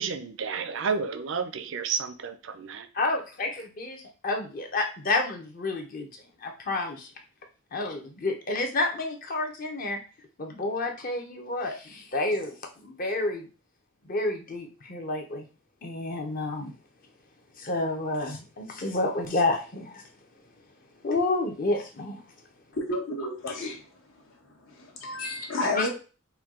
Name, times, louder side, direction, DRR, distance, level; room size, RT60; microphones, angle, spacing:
voice 1, 0.0-2.9, right 6 dB, 65° right, 9 dB, 0.5 m, -31 dB
voice 2, 2.9-6.1 6.4-7.1 7.7-10.0 10.4-12.5 12.8-13.5 14.1-15.5 15.8-16.7 17.6-20.0 21.0-22.2 25.2-25.5 25.7-25.9, left 2 dB, 40° left, 3 dB, 0.7 m, -29 dB
voice 3, 22.7-23.9 24.6-25.9, left 2 dB, 75° left, 0 dB, 1.2 m, -31 dB
4.4 x 2.3 x 3.6 m, 0.34 s
head